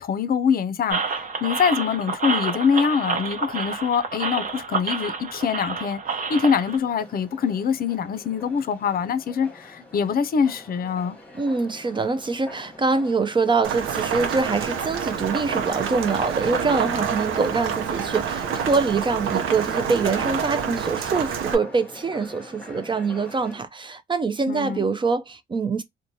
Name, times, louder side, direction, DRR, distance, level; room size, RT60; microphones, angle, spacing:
voice 1, 0.0-6.0 6.3-11.2 24.5-24.8, left 6 dB, 50° left, 0.5 m, -24 dB
sound 1, 0.9-6.8, right 4 dB, 40° right, 0.8 m, -29 dB
sound 2, 6.3-23.6, left 1 dB, 5° left, 1.0 m, -44 dB
voice 2, 11.3-25.8, right 4 dB, 25° right, 0.3 m, -24 dB
Rain, 13.6-21.6, right 7 dB, 85° right, 0.6 m, -27 dB
3.0 x 2.2 x 2.6 m
cardioid pair, 90°, 20 cm